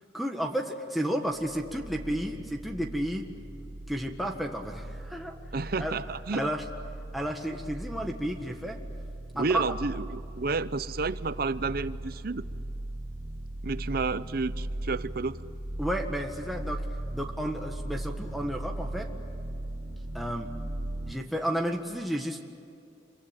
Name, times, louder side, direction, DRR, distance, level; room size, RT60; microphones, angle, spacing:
voice 1, 0.1-3.3 3.9-5.3 5.6-6.0 6.3-6.6 7.1-8.8 9.3-9.6 15.8-16.8 17.1-19.1 20.1-20.5 21.1-22.4, equal, ahead, 1 dB, 1.6 m, -32 dB
sound 1, 1.3-21.1, right 1 dB, 70° right, 3.5 m, -38 dB
voice 2, 5.5-6.5 9.3-12.4 13.6-15.4, right 3 dB, 55° right, 15 dB, 0.8 m, -31 dB
27.0 x 24.0 x 8.9 m, 2.6 s
head